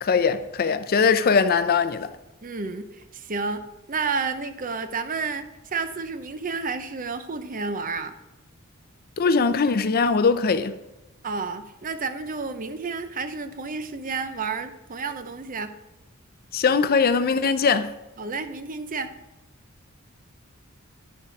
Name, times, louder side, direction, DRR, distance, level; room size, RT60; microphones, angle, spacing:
voice 1, 0.0-2.1 9.2-10.8 16.5-17.9, left 5 dB, 45° left, 0.5 m, -21 dB
voice 2, 2.4-8.1 11.2-15.7 18.2-19.1, right 4 dB, 40° right, 0.7 m, -31 dB
11.0 x 4.8 x 5.9 m
head